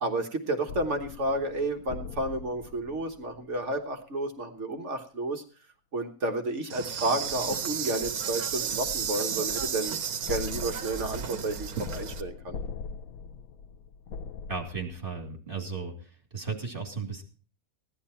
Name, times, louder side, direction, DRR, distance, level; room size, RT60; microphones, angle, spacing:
voice 1, 0.0-5.4 5.9-9.9 10.3-12.6, right 2 dB, 55° right, 4 dB, 1.5 m, -31 dB
sound 1, 0.7-3.8 10.2-15.3, left 5 dB, 80° left, 1.2 m, -41 dB
Insect, 6.7-12.2, right 7 dB, 85° right, 1.4 m, -33 dB
voice 2, 14.5-15.9 16.3-17.2, right 4 dB, 35° right, 2 dB, 3.1 m, -35 dB
16.0 x 11.0 x 4.3 m, 0.40 s
omnidirectional pair, 1.5 m